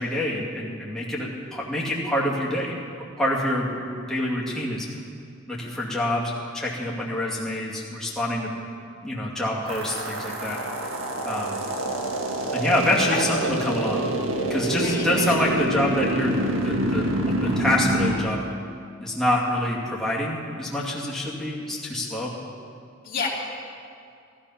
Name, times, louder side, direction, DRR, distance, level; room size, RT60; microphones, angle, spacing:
voice 1, 0.0-2.7 3.2-3.8 4.1-4.9 5.5-8.5 9.0-10.6 11.2-11.6 12.5-14.0 14.5-16.4 16.6-18.4 19.0-22.3, left 1 dB, 5° left, -6 dB, 2.4 m, -26 dB
sound 1, 9.7-18.2, right 1 dB, 90° right, 1.8 m, -26 dB
voice 2, 12.9-13.2 14.7-15.2 23.0-23.3, left 5 dB, 45° left, -5 dB, 2.6 m, -31 dB
17.5 x 13.0 x 5.8 m, 2.4 s
head